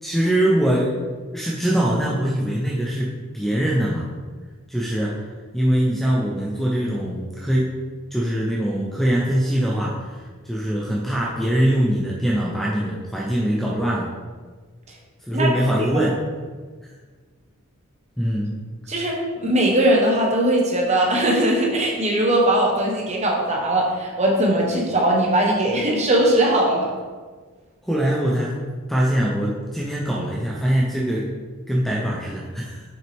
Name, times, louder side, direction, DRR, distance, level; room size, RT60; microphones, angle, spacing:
voice 1, 0.0-1.0 1.3-4.1 4.7-5.2 5.5-7.7 8.1-10.1 10.4-14.1 15.3-16.2 18.2-18.5 27.8-28.5 28.9-31.3 31.7-32.8, right 1 dB, ahead, -4 dB, 0.6 m, -22 dB
voice 2, 18.9-26.9, right 1 dB, 30° right, -1 dB, 1.1 m, -20 dB
6.1 x 5.5 x 3.5 m, 1.5 s
head